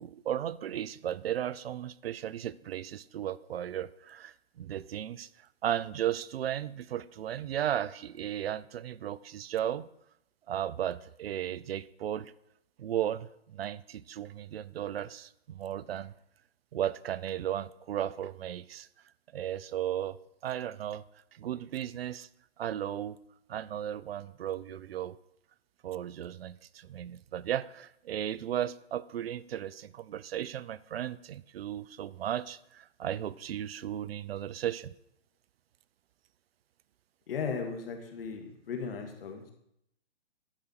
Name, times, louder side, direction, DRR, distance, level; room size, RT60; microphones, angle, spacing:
voice 1, 0.0-9.9 10.5-12.3 12.8-16.1 16.7-18.9 19.3-20.2 20.4-21.0 21.3-22.3 22.6-23.2 23.5-25.2 25.8-34.9, right 11 dB, 65° right, 19 dB, 0.5 m, -35 dB
voice 2, 37.3-39.5, left 5 dB, 60° left, 4 dB, 1.9 m, -36 dB
11.5 x 5.0 x 4.5 m, 0.77 s
hypercardioid pair, 135°, 32 cm